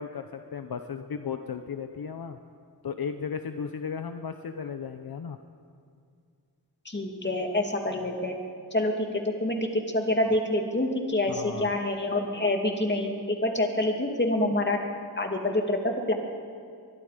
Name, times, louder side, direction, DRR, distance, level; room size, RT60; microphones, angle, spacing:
voice 1, 0.0-2.4 2.8-5.4 11.3-11.7, left 6 dB, 65° left, 8 dB, 0.9 m, -35 dB
voice 2, 6.8-8.4 8.7-14.8 15.2-16.1, left 1 dB, 30° left, 2 dB, 2.6 m, -27 dB
23.5 x 22.0 x 5.1 m, 2.3 s
wide cardioid pair, 110°, 39 cm